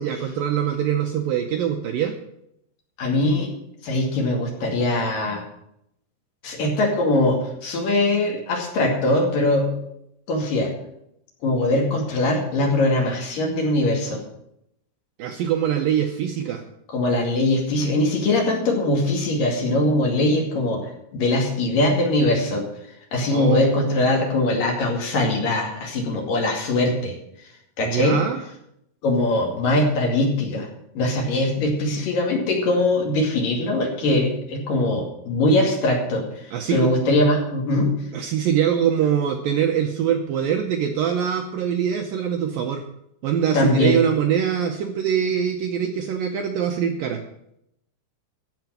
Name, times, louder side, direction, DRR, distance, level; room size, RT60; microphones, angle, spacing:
voice 1, 0.0-2.1 15.2-16.6 23.3-24.0 27.8-28.4 36.5-36.9 38.1-42.8 43.2-47.2, right 8 dB, 75° right, 4 dB, 2.1 m, -23 dB
voice 2, 3.0-3.6 3.8-5.4 6.4-9.7 10.3-10.7 11.4-14.2 16.9-22.6 23.1-27.2 27.8-28.2 29.0-30.7 31.0-37.9 43.5-44.0, left 2 dB, 55° left, 1 dB, 3.7 m, -21 dB
15.0 x 5.9 x 8.9 m, 0.78 s
omnidirectional pair, 5.0 m